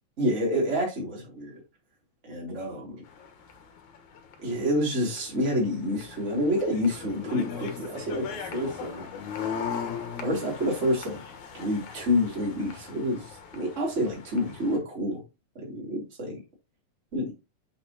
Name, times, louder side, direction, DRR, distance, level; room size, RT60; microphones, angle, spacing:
voice 1, 0.2-1.6 2.2-3.0 4.4-9.0 10.2-11.2 11.5-15.2 15.5-16.4 17.1-17.3, left 1 dB, 20° right, 3.1 m, -28 dB
sound 1, 3.0-14.8, left 7 dB, 65° left, 2.4 m, -39 dB
7.8 x 6.3 x 2.8 m
omnidirectional pair, 4.0 m